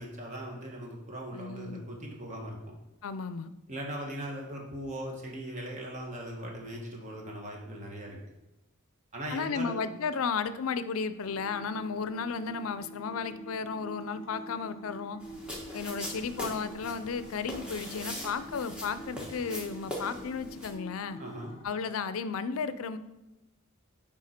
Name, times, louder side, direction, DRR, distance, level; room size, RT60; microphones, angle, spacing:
voice 1, 0.0-2.7 3.7-8.2 9.1-9.8 21.2-21.5, right 1 dB, 35° right, 0 dB, 1.1 m, -39 dB
voice 2, 1.3-1.8 3.0-3.5 9.3-15.2 15.7-21.2 21.6-23.0, left 5 dB, 75° left, 13 dB, 0.4 m, -34 dB
sound 1, 11.3-21.6, right 1 dB, 30° left, 0.9 m, -47 dB
sound 2, 15.2-20.7, equal, 5° right, 1.2 m, -41 dB
9.8 x 3.7 x 4.3 m, 0.99 s
head